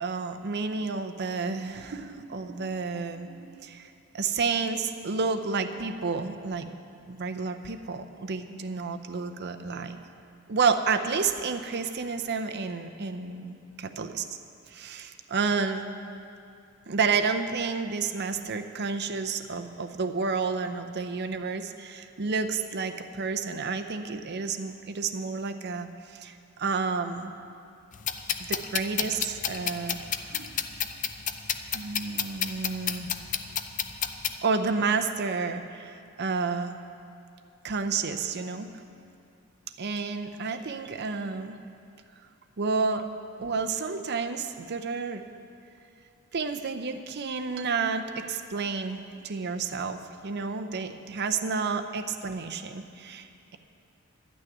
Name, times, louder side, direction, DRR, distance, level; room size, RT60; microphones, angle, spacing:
voice 1, 0.0-6.7 7.1-10.0 10.5-14.3 14.7-15.9 16.9-27.3 28.4-30.6 31.7-33.1 34.4-36.8 37.6-39.0 39.8-41.6 42.6-43.1 43.4-45.2 46.3-53.6, right 4 dB, 50° right, 7 dB, 0.7 m, -30 dB
sound 1, 27.9-34.4, left 8 dB, 35° left, 0.5 m, -31 dB
11.5 x 6.3 x 9.0 m, 2.5 s
head